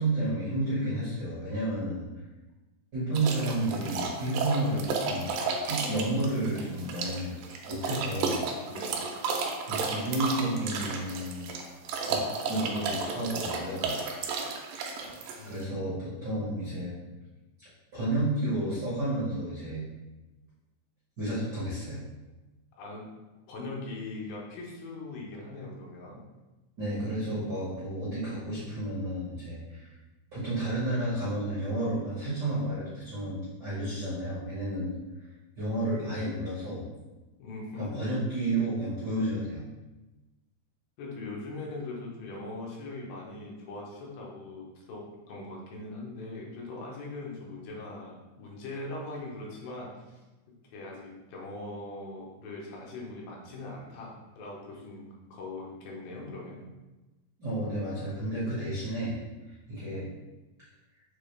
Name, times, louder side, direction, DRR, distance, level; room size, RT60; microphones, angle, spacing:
voice 1, 0.0-2.1 2.9-5.3 5.6-7.3 7.7-8.4 9.6-11.5 12.0-12.2 12.5-13.9 15.4-16.9 17.6-19.9 21.2-22.0 26.8-29.9 30.3-34.9 35.6-36.9 37.8-39.7 57.4-59.2 59.7-60.1, right 1 dB, 65° right, -10 dB, 1.0 m, -31 dB
sound 1, 3.2-15.6, right 4 dB, 80° right, 2.2 m, -33 dB
voice 2, 8.7-9.1 15.4-15.9 22.8-23.1 23.5-26.2 37.4-37.8 41.0-50.2 50.7-56.7, left 2 dB, 80° left, -3 dB, 2.6 m, -41 dB
6.6 x 2.4 x 3.2 m, 1.1 s
omnidirectional pair, 4.0 m